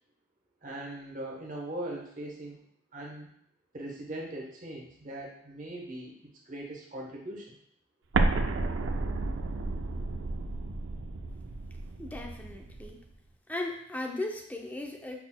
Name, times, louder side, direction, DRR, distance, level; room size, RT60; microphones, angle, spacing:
voice 1, 0.6-2.6 2.9-3.3 3.7-7.6, right 1 dB, 45° right, -1 dB, 1.0 m, -40 dB
Explosion, 8.1-12.9, right 3 dB, 85° right, 0.4 m, -31 dB
voice 2, 12.0-13.0 13.5-15.2, left 2 dB, 10° left, 2 dB, 0.4 m, -37 dB
5.8 x 4.0 x 2.2 m, 0.70 s
head